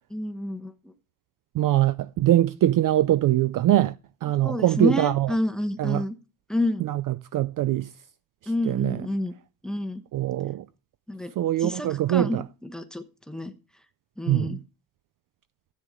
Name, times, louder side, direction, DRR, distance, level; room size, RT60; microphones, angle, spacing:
voice 1, 0.1-0.7 4.4-6.2 6.5-6.9 8.5-9.3 9.6-10.0 11.1-11.3 11.6-12.4 12.7-13.5 14.2-14.6, left 1 dB, ahead, 1.0 m, -28 dB
voice 2, 1.5-3.9 4.2-5.3 5.8-6.0 6.8-7.9 8.6-9.0 10.1-10.7 11.4-12.4 14.3-14.6, right 13 dB, 45° right, 0.5 m, -23 dB
13.5 x 9.0 x 3.7 m
cardioid pair, 150°, 49 cm